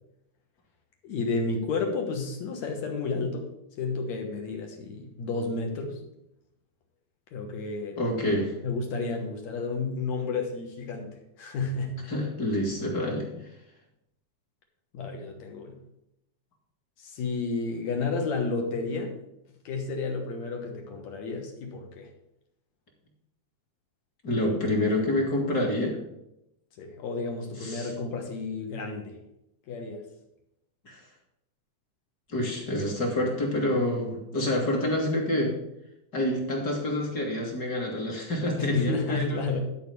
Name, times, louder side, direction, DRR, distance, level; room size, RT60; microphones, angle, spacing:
voice 1, 1.0-3.5 3.8-6.0 7.3-8.0 8.6-12.0 14.9-15.8 17.0-19.1 19.7-22.1 26.8-29.2 29.7-30.0 38.6-39.6, left 3 dB, 65° left, 3 dB, 2.5 m, -31 dB
voice 2, 8.0-8.5 12.1-13.3 24.2-26.0 27.6-27.9 30.9-31.0 32.3-35.5 36.1-39.5, left 1 dB, 35° left, -1 dB, 2.4 m, -27 dB
11.5 x 4.8 x 6.8 m, 0.84 s
omnidirectional pair, 3.7 m